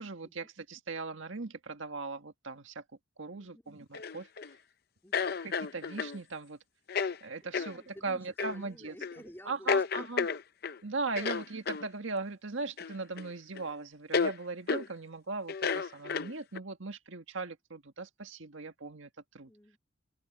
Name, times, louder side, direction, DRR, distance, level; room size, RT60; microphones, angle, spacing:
voice 1, 0.0-2.8 3.2-4.3 5.4-6.6 7.2-9.0 9.4-10.3 10.8-19.5, right 3 dB, 70° right, 1.7 m, -39 dB
voice 2, 3.3-3.8 5.0-5.4 7.4-10.1 19.5-19.8, equal, 10° left, 3.0 m, -53 dB
sound 1, 3.9-4.5 5.1-6.2 6.9-7.2 7.5-7.7 8.4-8.6 9.0-9.2 9.7-10.8 11.2-11.9 12.8-13.3 13.6-13.7 14.1-14.3 14.7-14.9 15.5-16.6, left 5 dB, 50° left, 0.6 m, -31 dB
head